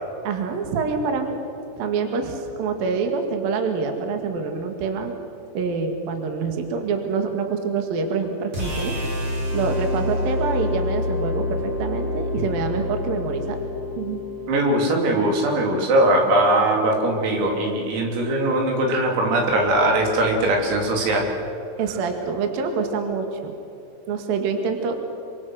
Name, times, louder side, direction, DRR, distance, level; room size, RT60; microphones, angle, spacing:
voice 1, 0.2-1.4 1.8-5.1 5.5-9.0 9.5-13.6 14.0-14.2 21.8-23.5 24.1-24.9, right 5 dB, 55° right, 4 dB, 3.1 m, -26 dB
sound 1, 8.5-14.7, left 2 dB, 25° right, 3.4 m, -27 dB
voice 2, 14.5-21.3, right 1 dB, 80° right, 1 dB, 6.1 m, -20 dB
27.5 x 25.5 x 6.4 m, 2.7 s
omnidirectional pair, 6.0 m